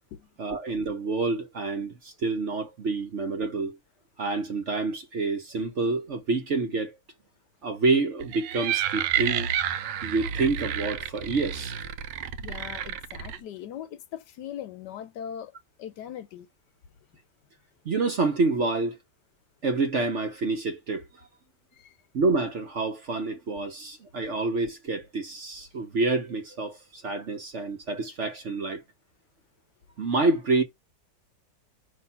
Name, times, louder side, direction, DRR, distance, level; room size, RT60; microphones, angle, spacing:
voice 1, 0.4-3.8 4.2-7.0 7.6-9.5 10.0-11.7 17.8-19.0 19.6-21.0 22.1-28.8 30.0-30.6, right 3 dB, 50° right, 1.0 m, -27 dB
sound 1, 8.2-13.4, right 9 dB, 80° right, 1.3 m, -30 dB
voice 2, 12.4-15.5 15.8-16.5 21.7-22.0 23.6-23.7, left 9 dB, 75° left, 1.2 m, -40 dB
5.3 x 3.1 x 5.6 m
omnidirectional pair, 2.0 m